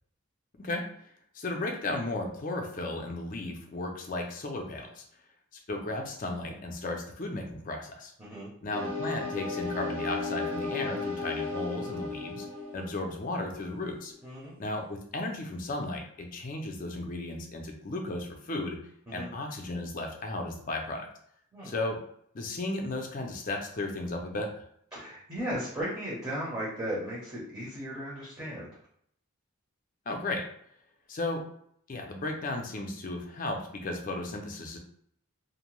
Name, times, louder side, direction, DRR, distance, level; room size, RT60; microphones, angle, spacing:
voice 1, 1.3-5.0 5.7-8.1 8.6-12.5 12.7-14.1 14.6-18.8 19.1-21.1 21.6-22.0 22.3-24.7 30.1-30.4 31.1-31.4 31.9-34.8, left 2 dB, 40° left, 3 dB, 0.4 m, -34 dB
voice 2, 8.2-8.5 14.2-14.5 19.1-19.3 21.5-21.7 24.9-28.7, equal, 15° right, -7 dB, 0.7 m, -36 dB
sound 1, 8.7-13.9, left 3 dB, 60° right, 0.7 m, -35 dB
2.6 x 2.1 x 3.0 m, 0.67 s
head